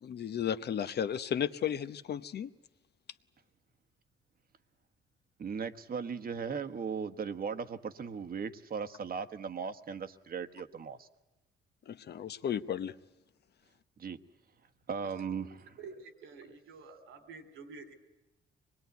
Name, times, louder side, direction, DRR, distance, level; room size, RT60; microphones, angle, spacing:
voice 1, 0.0-2.5 11.9-12.9, left 9 dB, 55° left, 12 dB, 0.9 m, -34 dB
voice 2, 5.4-11.1 14.0-14.2 14.9-15.6, right 6 dB, 50° right, 9 dB, 1.3 m, -37 dB
voice 3, 15.8-17.9, right 4 dB, 85° right, 8 dB, 3.4 m, -49 dB
24.5 x 20.5 x 9.4 m, 1.0 s
cardioid pair, 90°, 20 cm